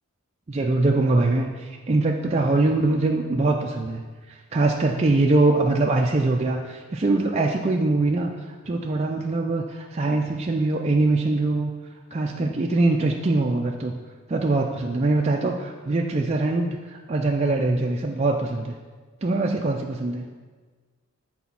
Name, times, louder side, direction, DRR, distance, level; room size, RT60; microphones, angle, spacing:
voice 1, 0.5-4.0 4.3-11.7 12.1-14.0 14.3-18.7 19.2-20.3, right 2 dB, 30° right, 0 dB, 0.4 m, -23 dB
8.4 x 4.2 x 5.7 m, 1.4 s
head